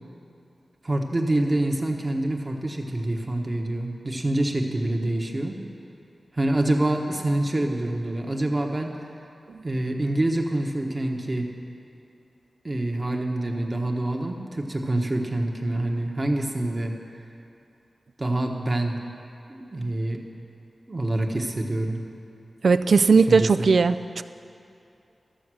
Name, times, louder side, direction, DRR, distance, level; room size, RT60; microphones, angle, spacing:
voice 1, 0.8-5.6 6.3-8.9 9.6-11.5 12.6-16.9 18.2-19.0 19.5-20.2 20.9-22.0 23.3-23.5, right 1 dB, 35° right, 2 dB, 1.3 m, -26 dB
voice 2, 22.6-24.2, right 4 dB, 75° right, 12 dB, 0.3 m, -18 dB
13.0 x 7.2 x 6.3 m, 2.7 s
cardioid pair, 50°, 0 cm